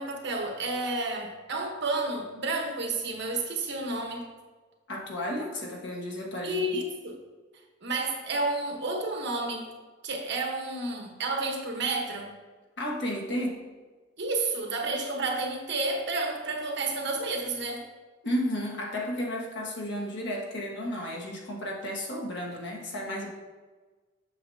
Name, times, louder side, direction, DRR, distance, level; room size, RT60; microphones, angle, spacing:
voice 1, 0.0-4.2 6.4-7.2 7.8-9.7 10.0-12.3 14.2-17.8, right 2 dB, 65° right, 2 dB, 1.2 m, -31 dB
voice 2, 4.9-6.8 12.8-13.6 18.2-23.3, equal, 65° left, -2 dB, 1.5 m, -33 dB
7.6 x 7.0 x 2.8 m, 1.3 s
head